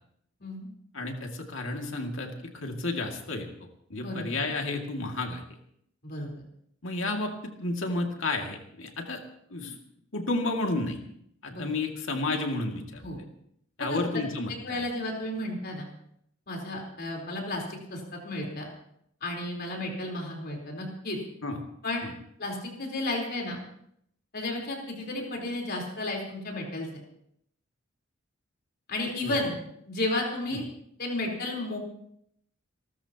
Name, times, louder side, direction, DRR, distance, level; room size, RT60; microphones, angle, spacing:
voice 1, 0.9-3.5 3.9-5.4 6.8-7.3 7.6-9.2 9.5-9.8 10.1-11.0 11.4-13.0 13.8-14.8 21.4-21.6 22.0-22.1 29.2-29.4 30.5-30.6, left 2 dB, 65° left, 2 dB, 2.3 m, -31 dB
voice 2, 4.0-4.4 6.0-6.3 11.5-11.7 13.0-13.2 13.8-14.2 14.6-15.9 16.5-18.7 19.2-21.2 21.8-22.1 22.4-23.6 24.3-26.9 28.9-29.6 29.9-30.6 31.0-31.8, left 2 dB, 50° left, 0 dB, 4.0 m, -33 dB
29.0 x 13.0 x 2.9 m, 0.71 s
head